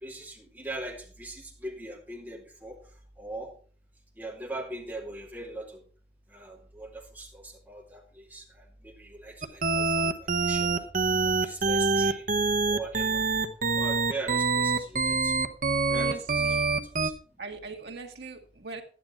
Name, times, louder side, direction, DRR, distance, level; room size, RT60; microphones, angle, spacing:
voice 1, 0.0-2.8 3.2-3.5 4.2-5.8 6.3-8.4 8.8-10.1 10.4-10.9 11.4-12.2 12.7-13.2 13.8-15.3 15.9-16.4 17.0-17.1, right 2 dB, 10° right, -2 dB, 2.7 m, -40 dB
sound 1, 9.4-17.1, right 4 dB, 50° right, 0.9 m, -25 dB
voice 2, 15.9-16.7 17.4-18.8, right 3 dB, 75° right, 3 dB, 1.8 m, -40 dB
11.0 x 9.7 x 4.4 m, 0.41 s
head